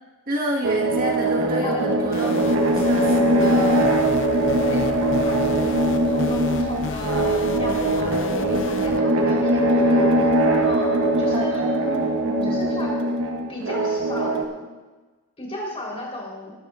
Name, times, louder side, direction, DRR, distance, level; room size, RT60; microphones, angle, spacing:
voice 1, 0.3-2.3 2.6-4.0 11.3-12.6, right 1 dB, 40° right, -2 dB, 1.5 m, -29 dB
sound 1, 0.6-14.5, right 1 dB, 65° right, 1.2 m, -21 dB
voice 2, 1.6-2.4 4.3-10.1 10.7-11.6 12.4-12.9 13.5-14.7 15.4-16.5, left 1 dB, 25° left, -3 dB, 3.8 m, -34 dB
sound 2, 2.1-9.0, left 3 dB, 60° left, 0.6 m, -33 dB
20.0 x 12.0 x 2.5 m, 1.2 s
head